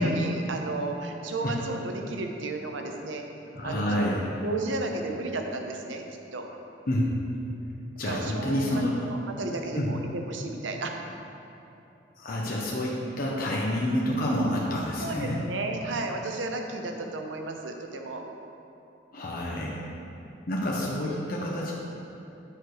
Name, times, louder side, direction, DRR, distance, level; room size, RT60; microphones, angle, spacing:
voice 1, 0.0-3.2 3.6-4.2 4.4-6.0 6.3-6.4 8.0-10.9 15.0-18.2, right 2 dB, 85° right, 3 dB, 0.8 m, -33 dB
voice 2, 3.5-4.3 6.9-7.1 8.0-9.0 9.7-9.9 12.2-15.4 19.1-19.9 20.5-21.7, left 1 dB, 50° left, -4 dB, 0.9 m, -28 dB
9.0 x 4.8 x 4.7 m, 2.9 s
head